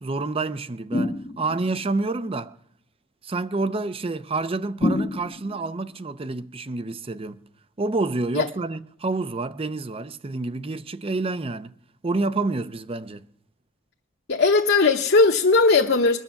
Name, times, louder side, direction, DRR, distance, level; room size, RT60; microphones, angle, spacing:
voice 1, 0.0-2.5 3.2-7.4 7.8-11.7 12.0-13.2, right 3 dB, 30° right, 0.6 m, -28 dB
sound 1, 0.9-1.8 4.8-5.7, left 1 dB, 30° left, 0.6 m, -27 dB
voice 2, 14.3-16.2, left 3 dB, 55° left, 0.9 m, -18 dB
22.0 x 8.3 x 7.0 m
head